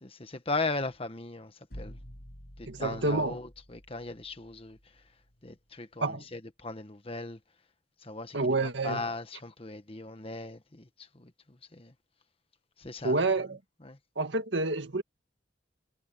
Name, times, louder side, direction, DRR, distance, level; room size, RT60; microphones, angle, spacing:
voice 1, 0.0-2.0 2.6-4.8 5.4-7.4 8.0-10.9 11.1-11.3 11.7-11.9 12.8-13.2 13.8-14.0, left 3 dB, 30° left, 1.4 m, -37 dB
sound 1, 1.7-5.6, equal, 55° left, 6.3 m, -50 dB
voice 2, 2.7-3.4 6.0-6.2 8.3-9.0 13.0-13.6 14.2-15.0, right 2 dB, 70° right, 1.9 m, -28 dB
head